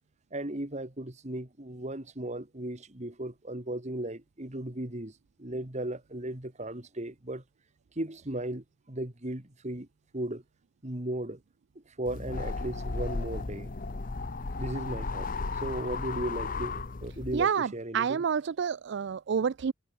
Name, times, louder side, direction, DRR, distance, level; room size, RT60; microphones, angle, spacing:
voice 1, 0.3-7.4 8.0-9.9 10.1-10.4 10.8-11.4 12.0-13.7 14.6-18.2, right 1 dB, 35° right, 2.2 m, -36 dB
sound 1, 12.1-17.5, left 3 dB, 40° left, 0.8 m, -35 dB
voice 2, 17.3-19.7, right 7 dB, 60° right, 0.4 m, -28 dB
head